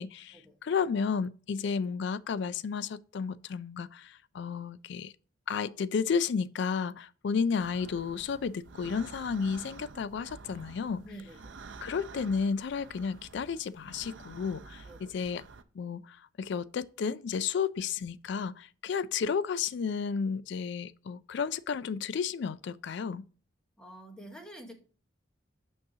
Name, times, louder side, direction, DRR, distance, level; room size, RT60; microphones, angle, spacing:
voice 1, 0.0-5.1 5.5-11.0 11.8-15.4 15.7-23.3, left 6 dB, 60° left, 0.3 m, -32 dB
sound 1, 7.6-15.6, right 4 dB, 65° right, 0.6 m, -49 dB
voice 2, 11.0-11.6 14.8-15.1 23.8-24.8, right 1 dB, 5° left, 1.1 m, -48 dB
6.3 x 6.1 x 2.7 m
head